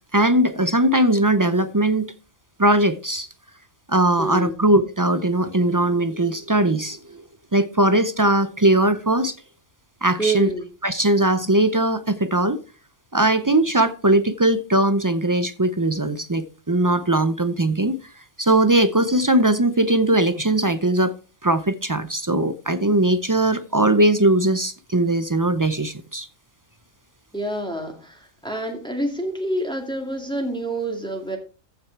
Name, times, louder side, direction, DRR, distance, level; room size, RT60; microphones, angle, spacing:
voice 1, 0.1-2.1 2.6-3.3 3.9-7.2 7.5-9.3 10.0-10.5 10.8-12.6 13.1-18.0 18.4-21.1 21.4-26.3, right 1 dB, 30° right, 0.3 m, -20 dB
voice 2, 4.2-4.6 10.2-10.7 27.3-31.4, right 2 dB, 5° left, 2.1 m, -27 dB
14.5 x 6.1 x 4.5 m
omnidirectional pair, 1.4 m